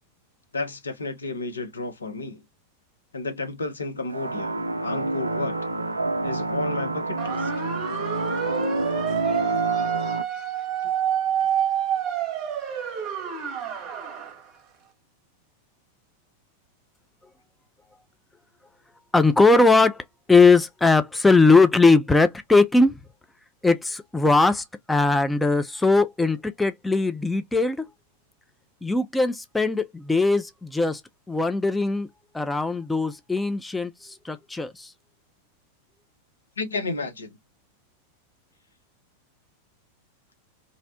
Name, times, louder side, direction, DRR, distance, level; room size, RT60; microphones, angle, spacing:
voice 1, 0.5-2.4 3.1-5.6 6.2-7.5 36.6-37.3, left 3 dB, 75° left, 0.6 m, -32 dB
sound 1, 4.1-10.2, right 2 dB, 80° right, 0.3 m, -28 dB
sound 2, 7.2-14.4, right 9 dB, 35° right, 0.7 m, -28 dB
voice 2, 19.1-20.0 20.3-23.0 23.6-27.9 28.8-31.0 31.3-32.1 32.3-34.9, left 3 dB, 5° left, 0.3 m, -20 dB
2.6 x 2.0 x 2.5 m
figure-of-eight pair, 90°, 0 cm